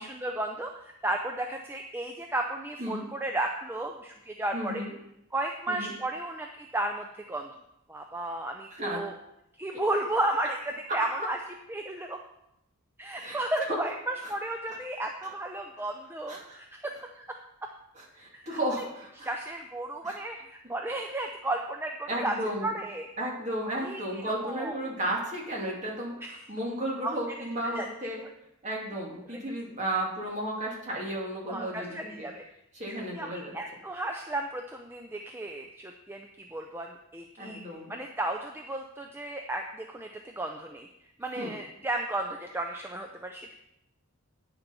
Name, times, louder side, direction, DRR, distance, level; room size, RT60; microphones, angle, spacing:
voice 1, 0.0-4.8 5.3-7.5 7.9-9.1 9.6-10.6 10.9-11.4 11.7-12.2 13.0-17.3 18.3-18.6 19.2-22.3 22.6-23.1 23.8-24.8 26.2-26.4 27.0-27.2 27.7-27.9 29.3-29.4 31.5-32.4 32.9-40.9 41.2-43.5, right 1 dB, 10° right, 3 dB, 0.4 m, -34 dB
voice 2, 4.5-4.9 5.7-5.9 8.7-9.0 9.7-9.8 13.1-13.4 13.7-13.8 14.2-14.3 15.2-15.3 16.3-16.6 18.0-19.3 20.0-20.2 22.1-22.7 23.2-28.2 28.6-32.3 32.7-33.5 37.4-37.9 41.4-41.5, right 1 dB, 30° right, -2 dB, 2.2 m, -34 dB
9.3 x 7.0 x 5.4 m, 0.86 s
head